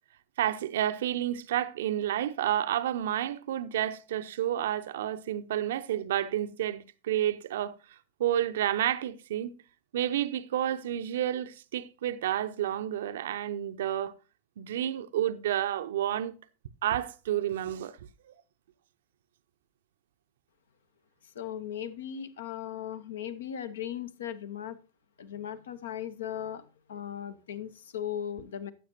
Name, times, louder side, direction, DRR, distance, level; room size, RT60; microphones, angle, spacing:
voice 1, 0.4-7.7 8.2-9.5 9.9-14.1 14.6-16.3 16.8-17.9, right 11 dB, 60° right, 0.6 m, -30 dB
voice 2, 21.2-24.8 25.2-26.6 26.9-28.7, left 10 dB, 60° left, 0.9 m, -37 dB
14.5 x 7.8 x 2.8 m
figure-of-eight pair, 90°, 0 cm